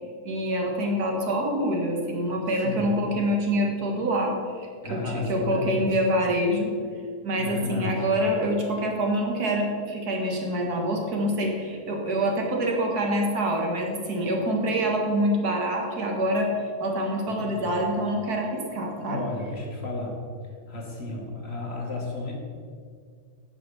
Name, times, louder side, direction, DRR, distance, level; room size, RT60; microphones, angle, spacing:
voice 1, 0.2-6.8 7.2-19.2, equal, 80° right, 1 dB, 2.1 m, -26 dB
voice 2, 4.8-5.9 7.4-8.1 17.4-17.8 19.1-20.2 20.7-22.3, left 3 dB, 45° left, -1 dB, 2.0 m, -33 dB
9.9 x 5.8 x 6.9 m, 2.1 s
omnidirectional pair, 1.6 m